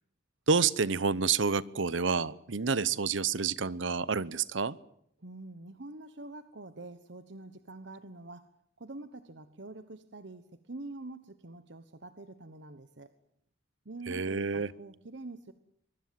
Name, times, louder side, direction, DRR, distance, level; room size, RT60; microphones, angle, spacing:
voice 1, 0.5-4.8 14.1-14.7, right 5 dB, 85° right, 19 dB, 0.9 m, -29 dB
voice 2, 5.2-8.5 8.8-13.1 13.8-15.5, right 2 dB, 70° right, 11 dB, 1.2 m, -46 dB
24.0 x 23.0 x 7.8 m, 0.71 s
head